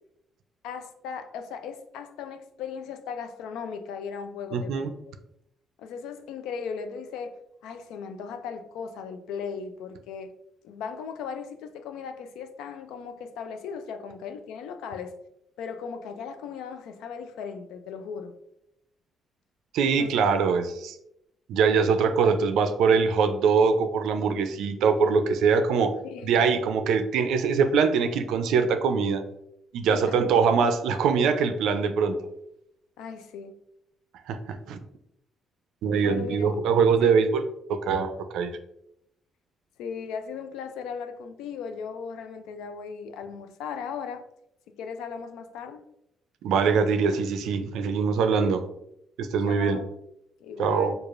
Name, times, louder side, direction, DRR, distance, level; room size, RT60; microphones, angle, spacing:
voice 1, 0.6-4.9 5.8-7.4 7.6-10.3 10.6-15.1 15.6-18.3 20.0-20.1 26.0-26.3 29.9-30.5 33.0-33.6 36.0-36.6 37.0-37.1 39.8-44.2 44.8-45.8 49.5-49.9 50.4-50.9, left 6 dB, 90° left, 8 dB, 0.3 m, -37 dB
voice 2, 4.5-4.9 19.7-21.0 21.5-25.9 26.2-29.2 29.7-32.2 34.3-34.8 35.8-37.4 37.7-38.5 46.4-48.6 49.2-49.8 50.6-50.9, right 5 dB, 80° right, 8 dB, 0.4 m, -23 dB
4.7 x 2.4 x 2.4 m, 0.81 s
cardioid pair, 100°, 0 cm